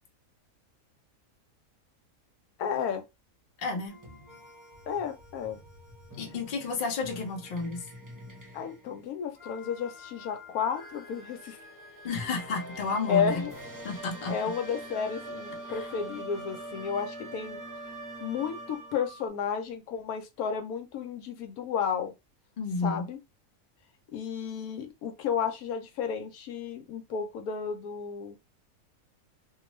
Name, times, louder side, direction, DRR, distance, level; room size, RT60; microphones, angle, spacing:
voice 1, 2.6-3.0 4.9-5.6 8.5-11.6 13.1-13.5 14.3-17.6 18.2-22.1 22.8-23.2 24.1-28.4, left 7 dB, 90° left, 1.1 m, -32 dB
voice 2, 3.6-3.9 6.2-7.9 12.0-13.4 13.8-14.4 15.7-15.9 22.6-23.1, left 4 dB, 45° left, 0.8 m, -31 dB
sound 1, 3.9-19.3, right 1 dB, 15° right, 0.7 m, -44 dB
2.5 x 2.3 x 3.0 m
omnidirectional pair, 1.5 m